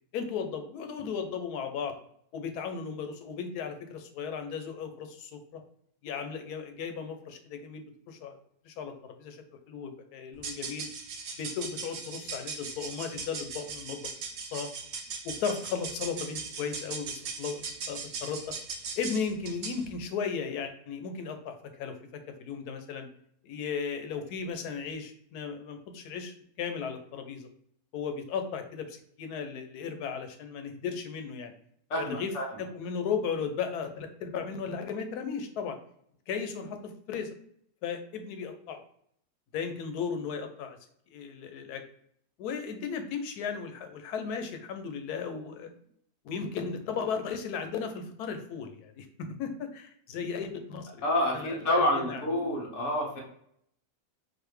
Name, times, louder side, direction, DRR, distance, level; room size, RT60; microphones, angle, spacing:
voice 1, 0.1-2.0 2.3-5.6 6.0-8.4 8.6-10.9 11.4-14.0 14.5-14.7 15.2-18.5 19.0-23.1 23.4-27.5 27.9-31.5 32.0-32.3 32.6-35.8 36.3-37.3 37.8-38.8 39.5-40.8 41.1-41.8 42.4-45.7 46.2-51.0 51.3-52.6, left 6 dB, 90° left, 6 dB, 1.2 m, -36 dB
sound 1, 10.3-19.9, right 5 dB, 70° right, 1.0 m, -39 dB
voice 2, 31.9-32.5 51.0-53.2, left 1 dB, 50° left, -1 dB, 1.3 m, -28 dB
4.0 x 2.6 x 3.1 m, 0.68 s
omnidirectional pair, 1.6 m